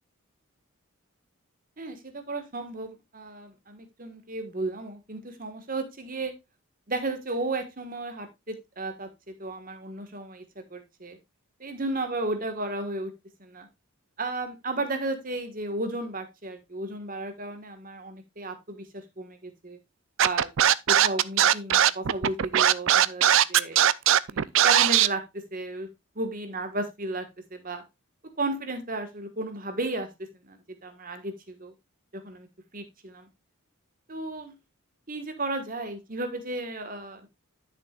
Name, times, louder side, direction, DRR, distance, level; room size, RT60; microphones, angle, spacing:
voice 1, 1.8-6.3 6.9-11.2 11.6-13.1 13.4-13.7 14.2-19.8 20.2-20.5 20.9-23.2 23.5-23.8 24.3-25.9 26.2-27.8 28.4-30.1 30.5-30.6 30.8-31.7 32.1-32.5 32.7-33.3 34.1-34.5 35.1-37.3, right 2 dB, 40° right, 8 dB, 1.5 m, -34 dB
Scratching (performance technique), 20.2-25.1, right 10 dB, 60° right, 0.5 m, -19 dB
11.0 x 6.8 x 2.4 m, 0.22 s
head